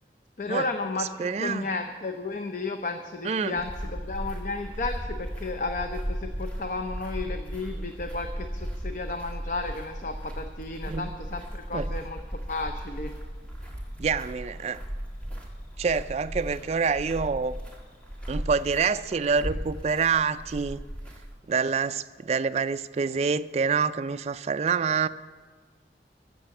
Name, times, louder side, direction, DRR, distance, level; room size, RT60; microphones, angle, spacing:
voice 1, 0.4-12.2 12.5-13.1, left 3 dB, 45° left, 6 dB, 0.6 m, -33 dB
voice 2, 1.0-1.7 3.2-3.6 10.9-11.1 11.7-11.9 14.0-14.8 15.8-17.5 18.3-20.8 21.5-25.1, right 5 dB, 35° right, 11 dB, 0.3 m, -26 dB
sound 1, 3.6-21.3, equal, 5° left, 1.7 m, -36 dB
14.0 x 6.9 x 7.6 m, 1.5 s
head